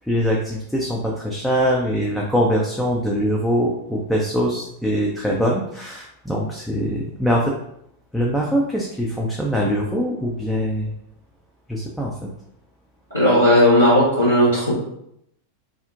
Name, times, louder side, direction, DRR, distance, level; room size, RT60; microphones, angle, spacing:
voice 1, 0.1-7.5 8.1-10.9 11.7-12.1, equal, ahead, -3 dB, 0.3 m, -22 dB
voice 2, 13.1-14.8, left 1 dB, 80° left, -11 dB, 1.0 m, -15 dB
2.5 x 2.0 x 2.5 m, 0.76 s
figure-of-eight pair, 90°, 0 cm